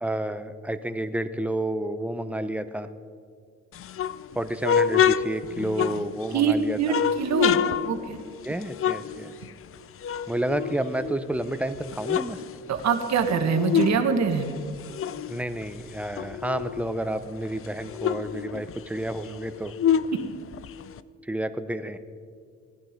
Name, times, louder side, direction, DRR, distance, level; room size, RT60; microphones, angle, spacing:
voice 1, 0.0-2.9 4.4-7.0 8.4-9.4 10.3-12.4 15.3-19.7 21.2-22.0, right 1 dB, 5° right, 10 dB, 0.7 m, -30 dB
sound 1, 3.7-6.4 6.8-9.7 10.0-11.4 11.7-14.0 14.3-16.9 17.2-17.3 17.6-21.0, left 8 dB, 45° left, 0.5 m, -27 dB
voice 2, 6.3-7.6 7.9-8.2 12.7-14.5, right 6 dB, 65° right, 6 dB, 1.6 m, -24 dB
18.0 x 11.0 x 5.2 m, 2.1 s
cardioid pair, 90°, 30 cm